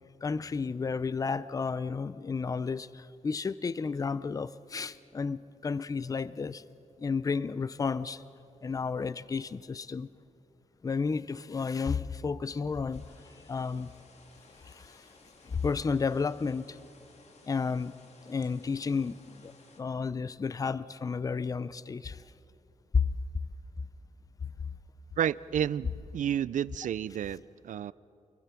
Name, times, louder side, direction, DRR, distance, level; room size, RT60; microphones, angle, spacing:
voice 1, 0.2-6.6 7.0-8.2 8.6-10.1 10.8-13.1 13.5-13.9 14.7-15.1 15.4-16.8 17.4-17.9 18.2-22.2 22.9-23.1, left 5 dB, 30° left, 0.5 m, -32 dB
sound 1, 12.9-19.8, left 3 dB, 60° left, 2.2 m, -58 dB
voice 2, 25.2-27.9, right 9 dB, 80° right, 0.4 m, -31 dB
27.5 x 22.5 x 5.9 m
wide cardioid pair, 165°, 13 cm